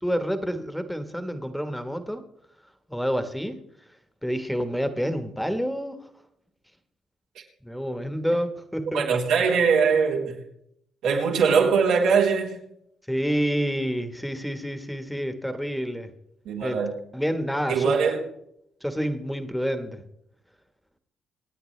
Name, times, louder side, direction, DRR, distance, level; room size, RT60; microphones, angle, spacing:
voice 1, 0.0-2.2 2.9-3.6 4.2-6.1 7.6-9.1 13.1-16.1 16.6-16.8 17.1-17.9 18.8-20.0, equal, ahead, 1.4 m, -28 dB
voice 2, 8.9-10.4 11.0-12.6 16.5-16.9 17.7-18.3, right 5 dB, 85° right, 3.6 m, -21 dB
26.5 x 9.2 x 3.3 m
cardioid pair, 90°, 0 cm